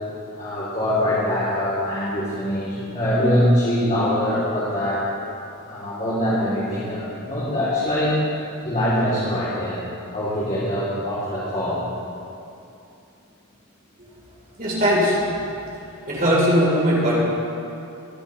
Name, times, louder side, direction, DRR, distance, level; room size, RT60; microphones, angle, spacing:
voice 1, 0.3-5.1 5.6-8.2 8.6-9.8 10.1-11.8, left 1 dB, 35° left, -10 dB, 3.2 m, -23 dB
voice 2, 14.6-15.3 16.1-17.1, equal, 40° right, -6 dB, 3.9 m, -19 dB
25.5 x 11.0 x 3.3 m, 2.7 s
head